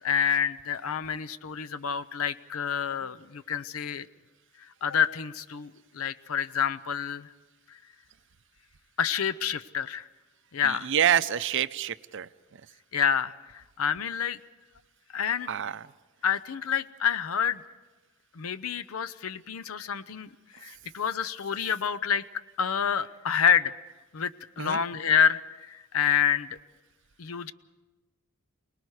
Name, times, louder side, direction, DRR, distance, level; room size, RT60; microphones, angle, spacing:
voice 1, 0.0-4.1 4.8-7.3 9.0-10.1 10.5-10.9 12.9-14.4 15.1-15.5 16.2-17.6 18.3-22.2 22.6-23.7 24.1-26.6 27.2-27.5, left 7 dB, 85° left, 15 dB, 0.6 m, -28 dB
voice 2, 10.6-12.3 15.5-15.9 24.6-24.8, right 9 dB, 60° right, 14 dB, 0.6 m, -27 dB
29.0 x 19.5 x 4.8 m, 1.2 s
head